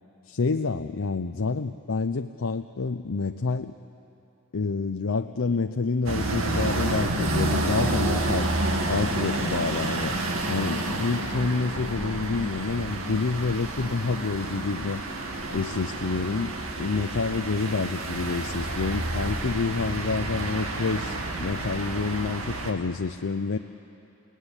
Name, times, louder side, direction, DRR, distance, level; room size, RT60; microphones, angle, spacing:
voice 1, 0.3-3.7 4.5-8.5 8.9-10.2 10.5-15.0 15.5-23.6, left 4 dB, 70° left, 7 dB, 0.6 m, -28 dB
sound 1, 6.1-22.7, right 2 dB, 80° right, 2.2 m, -29 dB
29.5 x 17.5 x 9.9 m, 2.8 s
head